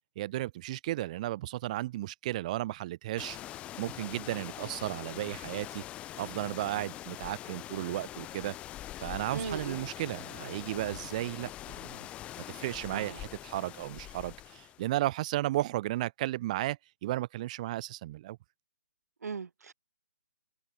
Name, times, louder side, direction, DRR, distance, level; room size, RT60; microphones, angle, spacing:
voice 1, 0.2-3.4 3.8-5.8 6.2-8.5 9.0-12.0 12.4-18.4, right 16 dB, 25° right, 0.4 m, -34 dB
sound 1, 3.2-14.9, left 13 dB, 15° left, 0.9 m, -43 dB
voice 2, 9.3-9.8 12.9-13.2 19.2-19.7, right 5 dB, 70° right, 2.3 m, -38 dB
hypercardioid pair, 160°, 9 cm